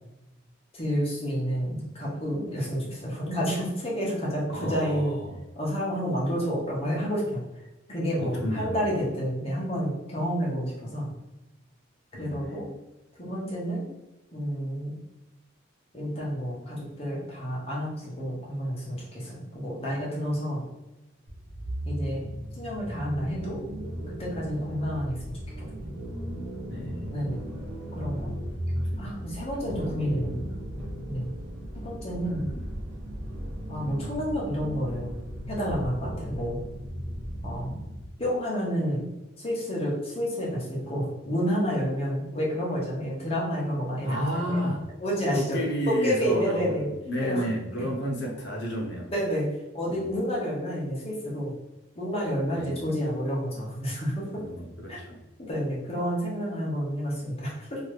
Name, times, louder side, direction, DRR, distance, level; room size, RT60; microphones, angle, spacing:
voice 1, 0.7-5.1 5.5-7.5 7.9-11.1 12.2-12.7 13.2-13.9 14.3-15.0 15.9-20.6 21.9-22.2 22.5-23.6 24.1-25.4 25.8-25.9 27.1-27.5 27.9-28.3 29.0-30.5 31.0-31.3 31.7-32.5 33.7-35.2 35.5-36.6 37.4-37.7 38.2-39.0 39.4-44.6 45.0-45.6 46.0-46.9 47.2-47.4 49.1-49.5 49.7-51.5 52.0-54.4 54.9-55.0 55.4-57.8, equal, 30° left, -4 dB, 0.8 m, -30 dB
voice 2, 4.5-5.4 8.2-8.8 12.1-12.5 26.7-27.1 28.7-29.0 29.7-30.6 32.2-32.7 44.0-44.8 45.3-49.1 49.9-50.1 52.5-52.9 54.4-55.2, equal, 60° left, -1 dB, 0.8 m, -32 dB
sound 1, 21.3-38.1, equal, 55° right, 0.9 m, -36 dB
2.8 x 2.3 x 3.2 m, 1.0 s
head